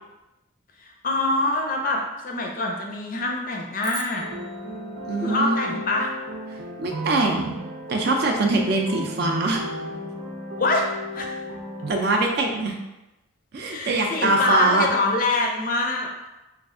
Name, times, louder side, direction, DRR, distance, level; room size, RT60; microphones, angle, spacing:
voice 1, 0.8-4.3 5.2-6.1 10.6-11.4 13.7-16.3, left 2 dB, 40° left, 1 dB, 0.5 m, -25 dB
sound 1, 3.8-6.2, right 1 dB, 20° right, 0.8 m, -43 dB
sound 2, 4.2-11.9, equal, 85° right, 0.7 m, -35 dB
voice 2, 5.1-5.8 6.8-7.6 7.9-9.6 11.9-12.8 13.5-14.9, right 2 dB, 50° right, 2 dB, 0.4 m, -23 dB
3.2 x 2.4 x 3.6 m, 0.99 s
head